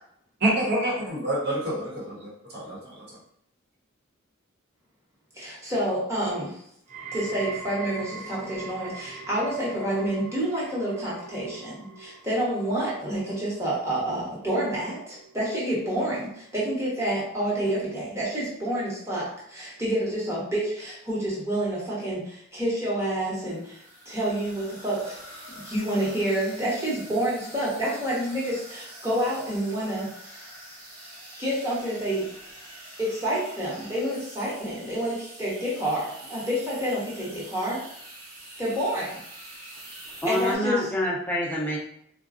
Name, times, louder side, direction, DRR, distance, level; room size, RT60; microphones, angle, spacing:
voice 1, 0.4-3.2, right 1 dB, 50° right, -5 dB, 1.1 m, -27 dB
voice 2, 5.3-6.6 7.1-25.2 25.6-30.4 31.4-32.3 33.0-37.8 38.6-39.2 40.3-40.9, right 1 dB, 15° right, -7 dB, 1.0 m, -28 dB
sound 1, 6.9-18.0 18.3-18.8 19.6-19.7, right 4 dB, 35° right, 0.5 m, -43 dB
sound 2, 23.4-40.6, right 1 dB, 85° right, 1.1 m, -45 dB
voice 3, 40.2-41.8, equal, 10° left, -4 dB, 0.6 m, -26 dB
3.8 x 2.2 x 2.5 m, 0.70 s
head